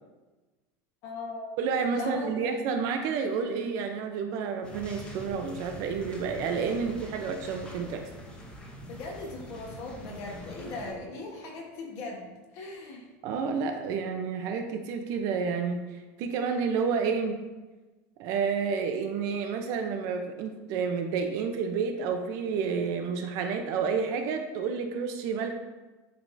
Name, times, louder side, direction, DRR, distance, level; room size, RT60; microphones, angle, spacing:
voice 1, 1.0-1.6 1.9-2.5 8.9-13.1, left 2 dB, 45° left, 0 dB, 1.2 m, -39 dB
voice 2, 1.6-8.0 13.2-15.8 16.2-17.4 18.2-25.5, right 5 dB, 45° right, 5 dB, 0.6 m, -30 dB
sound 1, 4.6-10.9, equal, 10° left, 0.7 m, -44 dB
10.5 x 3.5 x 2.6 m, 1.2 s
supercardioid pair, 170°, 8 cm